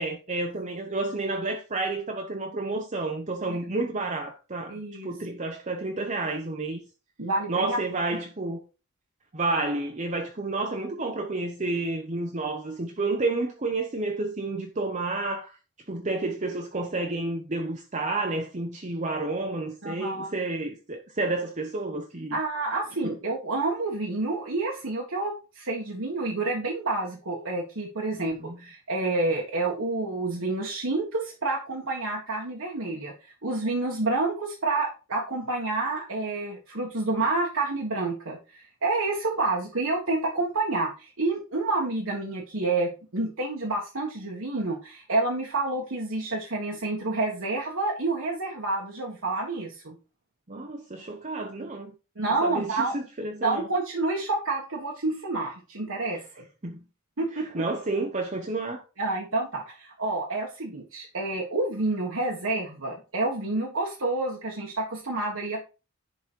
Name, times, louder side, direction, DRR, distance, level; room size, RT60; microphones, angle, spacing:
voice 1, 0.0-6.8 7.5-8.6 9.3-15.6 15.9-22.4 23.0-23.1 28.4-28.6 50.5-51.9 52.4-53.7 56.6-56.8 57.3-58.8, right 2 dB, 35° right, 0.9 m, -30 dB
voice 2, 4.7-5.1 7.2-7.8 19.8-20.3 22.3-49.9 52.2-52.9 53.4-56.4 57.2-57.6 59.0-65.6, right 2 dB, 65° right, 1.6 m, -29 dB
10.5 x 4.1 x 4.6 m
head